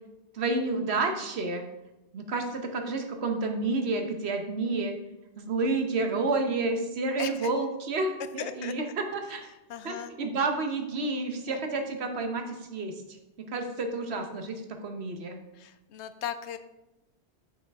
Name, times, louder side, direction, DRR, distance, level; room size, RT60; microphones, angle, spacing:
voice 1, 0.3-1.6 2.1-4.9 5.4-9.5 9.8-12.9 13.5-14.5 14.8-15.4, right 3 dB, 70° right, 5 dB, 1.2 m, -30 dB
voice 2, 7.2-7.5 8.4-8.7 9.7-10.1 11.5-11.6 15.6-16.6, left 9 dB, 90° left, 11 dB, 0.9 m, -37 dB
9.3 x 5.4 x 3.5 m, 0.96 s
omnidirectional pair, 1.1 m